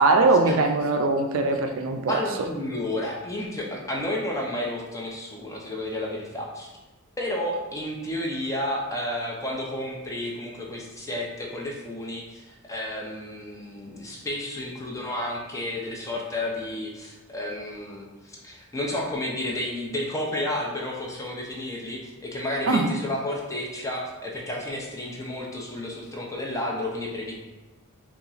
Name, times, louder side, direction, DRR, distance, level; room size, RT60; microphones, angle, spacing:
voice 1, 0.0-2.2 22.7-22.9, right 3 dB, 60° right, 5 dB, 0.3 m, -21 dB
voice 2, 2.1-6.7 7.2-27.4, left 1 dB, 15° left, -2 dB, 0.4 m, -31 dB
2.8 x 2.3 x 3.9 m, 1.1 s
head